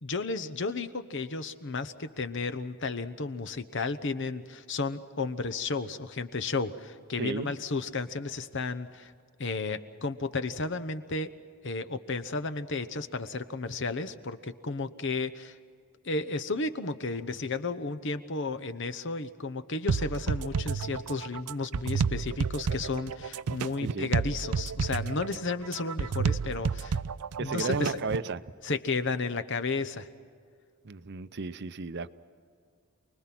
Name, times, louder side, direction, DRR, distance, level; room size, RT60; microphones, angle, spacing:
voice 1, 0.0-9.1 9.4-11.3 11.6-15.5 16.0-27.0 27.4-27.9 28.6-30.1, left 3 dB, 55° left, 10 dB, 1.0 m, -33 dB
voice 2, 7.2-7.5 23.8-24.1 27.4-28.4 30.8-32.1, right 3 dB, 50° right, 13 dB, 0.7 m, -33 dB
sound 1, 19.9-28.3, right 5 dB, 90° right, 0.5 m, -31 dB
28.5 x 20.5 x 6.1 m, 2.2 s
head